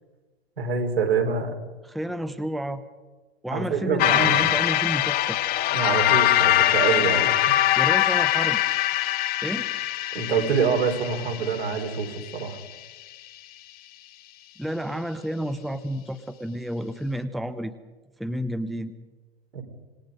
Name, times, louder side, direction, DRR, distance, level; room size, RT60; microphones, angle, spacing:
voice 1, 0.6-1.5 3.5-4.5 5.7-7.5 10.1-12.6 19.5-19.6, right 5 dB, 75° right, 2 dB, 4.6 m, -26 dB
voice 2, 1.9-2.8 3.4-5.4 7.8-8.6 9.4-9.6 14.6-17.7 18.2-18.9, equal, ahead, 11 dB, 0.8 m, -30 dB
sound 1, 4.0-12.5, left 14 dB, 30° left, 1.3 m, -23 dB
26.5 x 20.0 x 5.3 m, 1.2 s
figure-of-eight pair, 105°, 31 cm